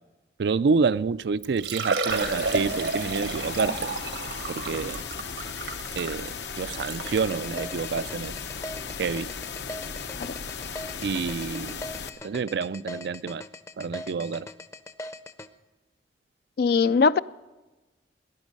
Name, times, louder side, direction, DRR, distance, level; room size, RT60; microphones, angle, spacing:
voice 1, 0.4-3.9 4.5-5.0 6.0-8.3 9.0-9.3 11.0-11.8 12.2-13.4 13.8-14.5, right 5 dB, 65° right, 0.4 m, -28 dB
Liquid, 1.0-1.1 1.4-7.3 8.0-8.1 8.6-8.7 10.3-10.4 10.6-10.7, right 4 dB, 85° right, 1.5 m, -31 dB
sound 1, 2.1-12.1, left 6 dB, 75° left, 0.8 m, -36 dB
sound 2, 7.0-15.5, left 1 dB, 15° left, 0.6 m, -40 dB
voice 2, 16.6-17.2, left 5 dB, 60° left, 0.4 m, -21 dB
19.0 x 10.5 x 5.3 m
head